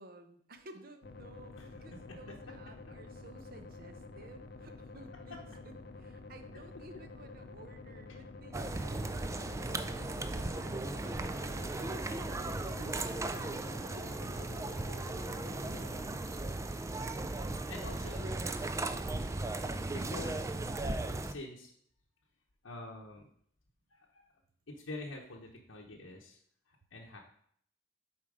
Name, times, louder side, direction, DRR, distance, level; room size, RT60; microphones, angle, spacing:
voice 1, 0.0-13.5 13.8-15.8, right 2 dB, 50° right, 7 dB, 0.8 m, -55 dB
sound 1, 1.0-16.0, left 3 dB, 55° left, 0.6 m, -49 dB
sound 2, 8.5-21.3, right 2 dB, 15° right, 0.3 m, -37 dB
voice 2, 16.5-16.8 17.6-18.3 19.9-20.4 21.2-21.7 22.6-23.2 23.9-24.2 24.7-26.4 26.7-27.2, left 2 dB, 90° left, -3 dB, 0.9 m, -46 dB
7.3 x 4.5 x 4.9 m, 0.65 s
head